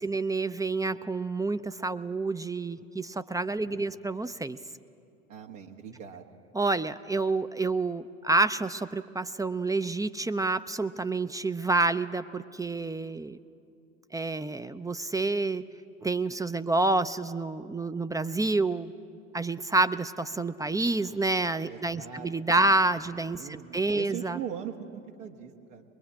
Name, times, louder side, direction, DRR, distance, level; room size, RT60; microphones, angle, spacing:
voice 1, 0.0-4.6 6.5-13.4 14.1-15.6 16.0-18.9 19.3-24.4, right 3 dB, 10° right, 12 dB, 0.5 m, -28 dB
voice 2, 3.5-4.0 5.3-6.3 21.7-22.7 23.4-25.8, right 8 dB, 70° right, 1 dB, 1.6 m, -41 dB
22.5 x 21.5 x 8.6 m, 2.5 s
figure-of-eight pair, 70°, 39 cm